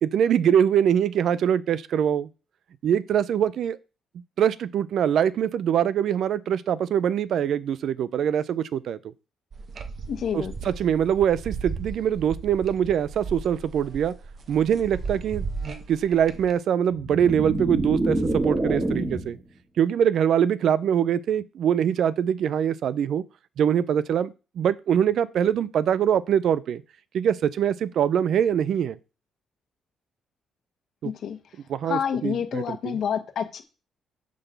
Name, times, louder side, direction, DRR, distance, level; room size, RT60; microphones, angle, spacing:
voice 1, 0.0-2.3 2.8-3.8 4.4-9.0 10.3-14.1 14.5-15.5 15.9-19.4 19.8-23.2 23.6-26.8 27.1-29.0 31.0-31.1 31.7-33.0, right 9 dB, 70° right, 0.5 m, -23 dB
sound 1, 9.5-16.5, right 4 dB, 50° right, 1.1 m, -36 dB
voice 2, 10.1-10.5 31.0-31.4 31.8-33.6, left 8 dB, 65° left, 1.3 m, -28 dB
sound 2, 16.9-19.4, right 1 dB, 25° right, 2.2 m, -27 dB
8.3 x 4.0 x 6.8 m
cardioid pair, 90°, 0 cm